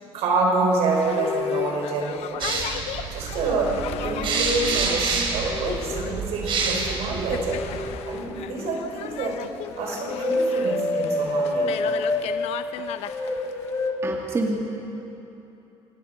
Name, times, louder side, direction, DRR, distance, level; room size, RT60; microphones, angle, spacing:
voice 1, 0.1-2.7 3.1-3.7 4.0-7.7 8.1-9.4 9.8-11.7, right 3 dB, 75° right, 0 dB, 5.5 m, -27 dB
Boat Water vehicle, 0.7-13.9, left 11 dB, 75° left, 0.8 m, -36 dB
sound 1, 2.4-8.0, right 4 dB, 50° right, 3.7 m, -28 dB
sound 2, 3.4-4.8 5.5-8.8 9.7-12.3 12.9-14.0, left 2 dB, 30° left, 2.8 m, -29 dB
voice 2, 14.0-14.7, right 2 dB, 25° right, 0 dB, 1.9 m, -27 dB
27.0 x 18.5 x 5.7 m, 3.0 s
cardioid pair, 120°, 11 cm